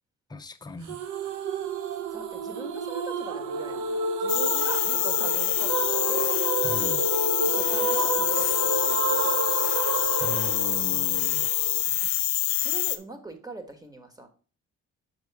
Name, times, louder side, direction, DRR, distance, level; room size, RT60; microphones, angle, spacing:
voice 1, 0.3-1.0 6.6-7.0 10.2-11.5, left 2 dB, 15° left, 0.6 m, -38 dB
sound 1, 0.9-11.8, right 4 dB, 85° right, 0.8 m, -30 dB
voice 2, 2.1-6.3 7.4-9.4 12.6-14.3, right 2 dB, 10° right, 1.4 m, -42 dB
sound 2, 4.3-13.0, left 14 dB, 75° left, 0.7 m, -26 dB
5.5 x 4.9 x 4.6 m
cardioid pair, 90°, 30 cm